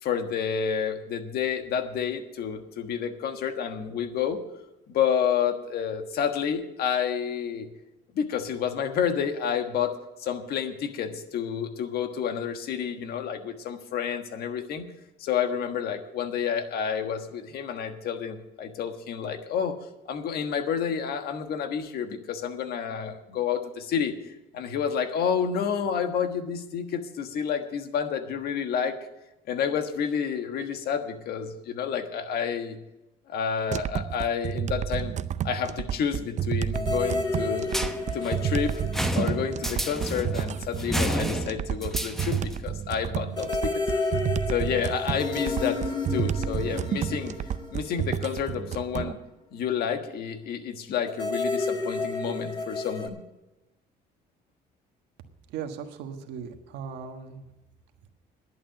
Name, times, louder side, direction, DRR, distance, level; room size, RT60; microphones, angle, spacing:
voice 1, 0.0-4.4 4.9-7.7 8.1-14.9 15.2-19.8 20.0-28.9 29.5-32.8 33.3-35.2 35.4-37.7 38.1-38.8 39.1-43.8 44.5-45.8 46.1-47.4 47.7-49.2 49.5-53.2, left 7 dB, 65° left, 7 dB, 1.5 m, -29 dB
sound 1, 33.7-49.1, right 9 dB, 45° right, 0.5 m, -30 dB
sound 2, 36.7-40.5 40.7-40.8 43.3-48.7 51.1-53.1, left 3 dB, 25° left, 1.8 m, -32 dB
sound 3, 37.7-42.7, equal, ahead, 0.9 m, -31 dB
voice 2, 55.5-57.5, right 7 dB, 85° right, 5 dB, 1.4 m, -38 dB
11.0 x 8.7 x 7.7 m, 0.97 s
cardioid pair, 110°, 17 cm